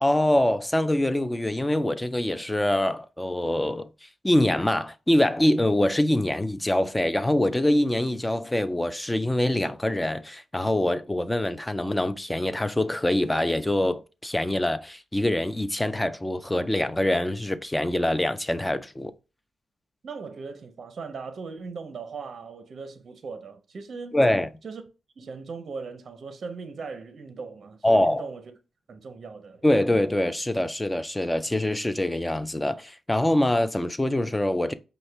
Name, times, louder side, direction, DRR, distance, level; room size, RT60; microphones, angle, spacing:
voice 1, 0.0-3.9 4.2-19.1 24.1-24.5 27.8-28.2 29.6-34.7, left 1 dB, 10° left, 0.3 m, -24 dB
voice 2, 20.0-24.3 24.6-24.8 25.2-28.4 28.9-29.6, right 4 dB, 55° right, 0.5 m, -39 dB
5.3 x 2.1 x 3.2 m
cardioid pair, 95°, 0 cm